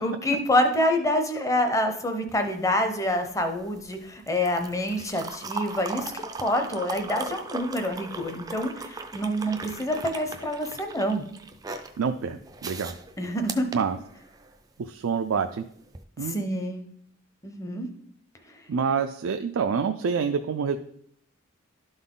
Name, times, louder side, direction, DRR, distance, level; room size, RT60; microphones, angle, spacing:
voice 1, 0.0-11.2 13.2-13.7 16.2-16.8 17.4-17.9, left 1 dB, 15° left, 5 dB, 0.7 m, -27 dB
sound 1, 2.3-14.6 15.8-16.0, right 4 dB, 20° right, 0.4 m, -39 dB
voice 2, 12.0-13.0 13.7-14.0 14.8-15.6 16.2-16.4 18.7-20.8, right 6 dB, 85° right, 7 dB, 0.4 m, -27 dB
12.0 x 4.0 x 3.8 m, 0.68 s
head